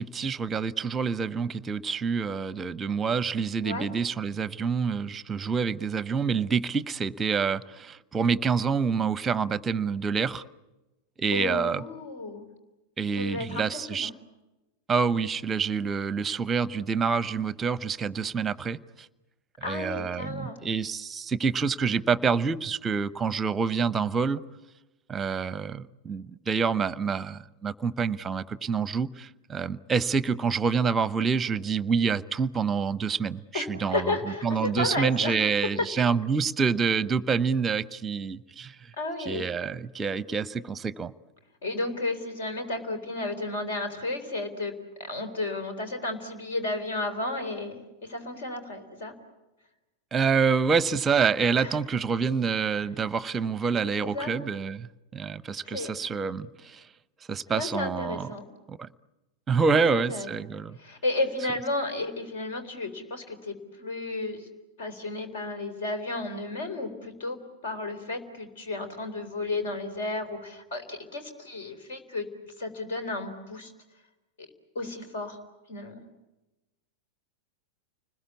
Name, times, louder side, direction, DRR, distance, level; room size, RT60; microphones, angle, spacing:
voice 1, 0.0-10.4 11.2-11.8 13.0-14.1 14.9-19.1 19.6-24.4 25.1-34.1 34.4-38.9 39.3-41.1 50.1-54.9 55.1-56.8 57.3-58.3 58.7-58.9 59.5-60.8, right 5 dB, 20° right, 0.8 m, -27 dB
voice 2, 11.3-12.5 13.1-14.1 19.6-20.6 33.5-35.9 39.0-39.5 41.6-44.7 45.0-49.1 51.6-51.8 53.9-54.3 55.6-55.9 57.5-58.5 59.7-60.3 60.8-64.5 64.8-73.7 74.4-74.5 74.7-75.4 75.7-76.0, left 2 dB, 60° left, 3.9 m, -33 dB
30.0 x 20.5 x 8.4 m
figure-of-eight pair, 90°, 0 cm